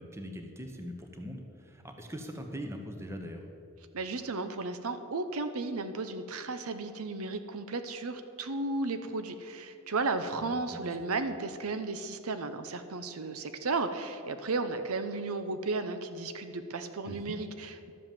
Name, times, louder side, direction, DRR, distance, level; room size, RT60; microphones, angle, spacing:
voice 1, 0.0-3.4 10.4-11.0 17.0-17.4, equal, 10° right, 4 dB, 1.1 m, -42 dB
voice 2, 3.9-17.9, right 3 dB, 75° right, 9 dB, 0.8 m, -34 dB
12.0 x 7.9 x 7.5 m, 2.6 s
head